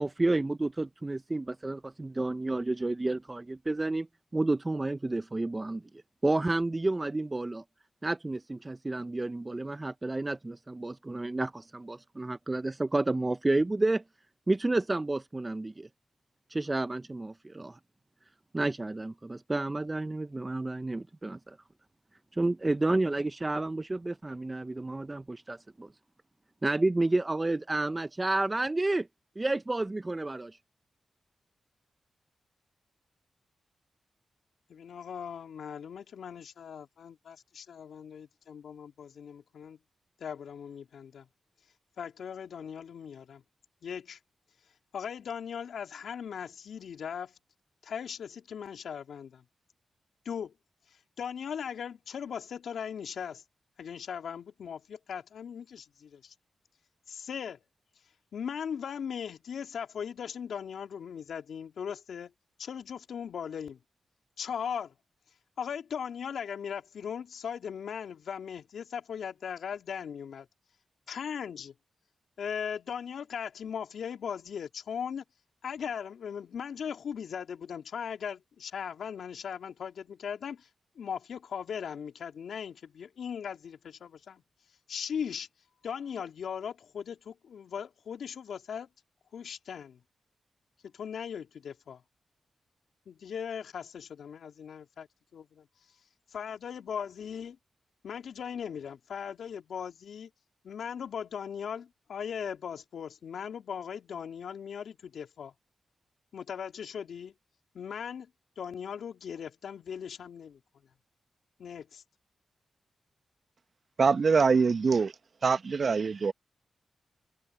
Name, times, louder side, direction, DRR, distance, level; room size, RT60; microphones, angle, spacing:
voice 1, 0.0-4.1 4.3-7.6 8.0-14.0 14.5-15.9 16.5-17.8 18.5-21.6 22.3-25.9 26.6-29.1 29.4-30.6, right 2 dB, 30° right, 0.9 m, -30 dB
voice 2, 34.7-39.8 40.2-41.3 42.0-43.4 43.8-44.2 44.9-47.3 47.8-49.4 50.3-50.5 51.2-53.4 53.8-56.3 57.1-57.6 58.3-62.3 62.6-63.8 64.4-64.9 65.6-70.5 71.1-71.7 72.4-75.2 75.6-80.7 81.0-84.4 84.9-85.5 85.8-88.9 89.3-90.0 90.8-92.0 93.1-95.1 95.3-95.7 96.3-97.6 98.0-100.3 100.6-105.5 106.3-107.3 107.7-108.3 108.6-110.6 111.6-112.0, left 7 dB, 80° left, 3.5 m, -38 dB
voice 3, 114.0-115.1 115.4-116.3, right 5 dB, 60° right, 1.1 m, -24 dB
supercardioid pair, 45°, 0 cm